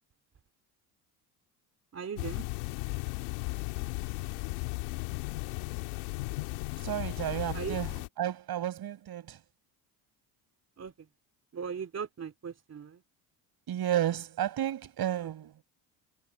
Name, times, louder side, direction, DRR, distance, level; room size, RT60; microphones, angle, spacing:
voice 1, 1.9-2.5 7.5-7.8 10.8-10.9 11.5-13.0, right 6 dB, 35° right, 3.0 m, -38 dB
sound 1, 2.2-8.1, left 25 dB, 90° left, 1.9 m, -36 dB
voice 2, 6.8-9.4 13.7-15.5, right 11 dB, 55° right, 5.8 m, -32 dB
supercardioid pair, 85°, 44 cm